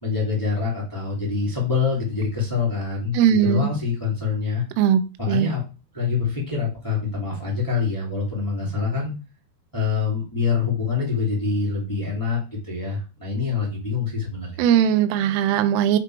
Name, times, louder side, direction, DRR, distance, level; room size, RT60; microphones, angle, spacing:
voice 1, 0.0-4.6 5.2-5.6 5.9-9.1 9.7-14.6, left 5 dB, 10° left, -3 dB, 1.1 m, -25 dB
voice 2, 3.1-3.7 4.8-5.0 5.3-5.5 14.6-16.0, right 9 dB, 85° right, 11 dB, 2.4 m, -19 dB
7.1 x 3.5 x 4.6 m, 0.32 s
omnidirectional pair, 5.0 m